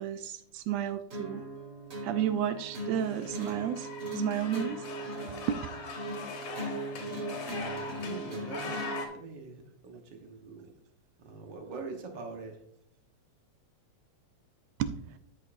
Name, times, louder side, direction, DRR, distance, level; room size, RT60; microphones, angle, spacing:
voice 1, 0.0-1.4 2.0-4.9 5.5-5.6 14.8-14.9, right 10 dB, 80° right, 1.6 m, -32 dB
sound 1, 1.1-9.1, right 2 dB, 35° right, 1.6 m, -39 dB
sound 2, 2.6-9.1, left 4 dB, 60° left, 2.1 m, -42 dB
voice 2, 7.4-8.8 9.1-10.7 11.2-12.6, right 4 dB, 50° right, 1.5 m, -44 dB
13.0 x 5.6 x 2.6 m
omnidirectional pair, 3.3 m